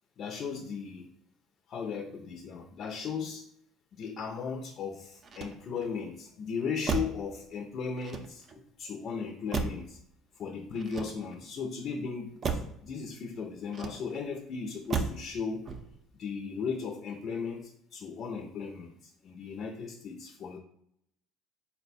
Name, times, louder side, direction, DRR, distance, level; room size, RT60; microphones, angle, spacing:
voice 1, 0.2-1.1 1.7-3.4 3.9-10.0 10.4-15.7 16.2-18.9 19.2-20.6, left 5 dB, 55° left, 1 dB, 0.5 m, -36 dB
Motor vehicle (road), 5.2-6.0 6.8-7.3 8.0-8.7 9.5-10.0 10.8-11.5 12.4-12.8 13.7-14.3 14.9-15.3 15.6-16.1, right 5 dB, 40° right, 0.5 m, -35 dB
4.2 x 2.2 x 4.0 m, 0.73 s
supercardioid pair, 95°, 0 cm